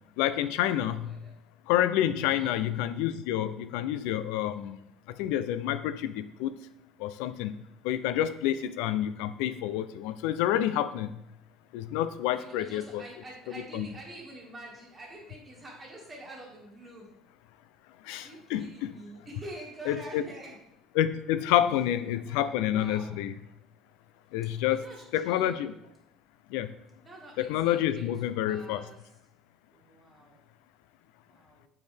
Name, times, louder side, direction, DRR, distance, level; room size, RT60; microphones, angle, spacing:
voice 1, 0.2-1.2 1.7-4.8 5.2-6.5 7.0-7.6 7.8-11.1 11.7-13.0 13.7-13.9 18.0-18.9 19.9-20.2 21.0-23.3 24.3-24.8 25.1-25.7 26.5-26.7 27.4-28.8, left 11 dB, 85° left, 13 dB, 0.3 m, -28 dB
voice 2, 1.0-1.3 2.2-2.6 12.3-17.1 18.2-20.6 22.3-23.2 24.7-25.6 27.0-28.1 28.4-29.0 29.7-30.4 31.3-31.7, right 1 dB, 20° right, -2 dB, 1.9 m, -46 dB
8.0 x 4.6 x 3.4 m, 0.81 s
cardioid pair, 145°, 0 cm